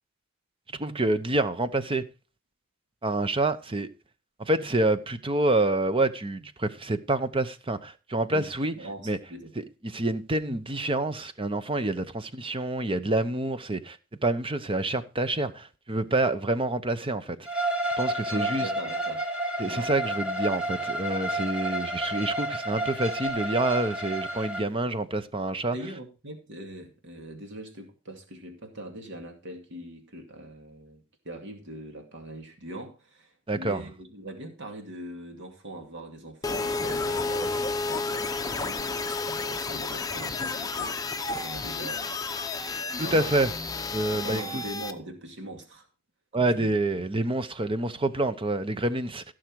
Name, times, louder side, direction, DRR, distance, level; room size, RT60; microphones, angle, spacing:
voice 1, 0.8-2.0 3.0-3.9 4.4-8.7 9.0-9.2 9.6-14.0 14.2-17.5 18.0-18.7 19.6-25.8 33.5-33.9 43.0-43.5 43.9-44.6 46.3-49.2, right 2 dB, 25° right, 0.8 m, -27 dB
voice 2, 8.3-9.5 18.3-19.2 19.7-19.9 25.7-42.1 43.0-43.4 44.1-45.9 46.3-46.7, right 1 dB, 60° right, 2.3 m, -42 dB
Bowed string instrument, 17.4-24.6, right 1 dB, 5° right, 1.5 m, -30 dB
sound 1, 36.4-44.9, left 3 dB, 20° left, 0.9 m, -31 dB
16.0 x 6.4 x 4.6 m
head